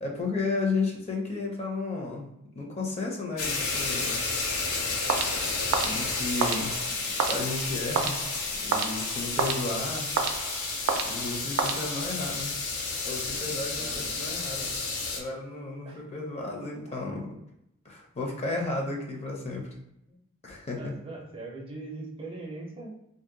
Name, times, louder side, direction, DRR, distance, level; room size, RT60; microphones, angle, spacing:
voice 1, 0.0-2.3 2.5-4.2 5.8-6.7 7.3-8.2 8.6-10.1 11.0-12.5 13.0-14.7 15.1-17.3 17.8-19.6 20.4-20.9, left 3 dB, 30° left, 0 dB, 0.5 m, -33 dB
sound 1, 3.4-15.2, left 3 dB, 90° left, 0.6 m, -31 dB
sound 2, 5.1-12.3, right 5 dB, 90° right, 0.4 m, -31 dB
voice 2, 13.8-14.4 15.8-16.0 16.9-17.1 20.1-20.2 20.7-22.9, right 3 dB, 25° right, -1 dB, 0.4 m, -41 dB
2.6 x 2.1 x 3.7 m, 0.81 s
head